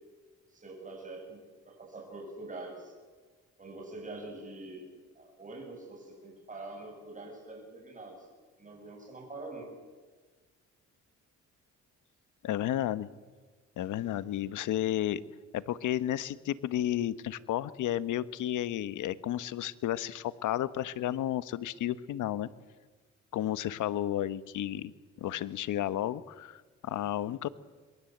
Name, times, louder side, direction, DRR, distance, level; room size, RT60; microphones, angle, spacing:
voice 1, 0.5-2.9 3.6-8.3 8.6-9.7, right 2 dB, 25° right, 1 dB, 7.3 m, -45 dB
voice 2, 12.4-13.1 13.8-15.2 15.5-22.5 23.3-24.9 25.2-27.5, left 12 dB, 80° left, 15 dB, 1.3 m, -32 dB
27.0 x 22.5 x 8.0 m, 1.4 s
cardioid pair, 90°, 30 cm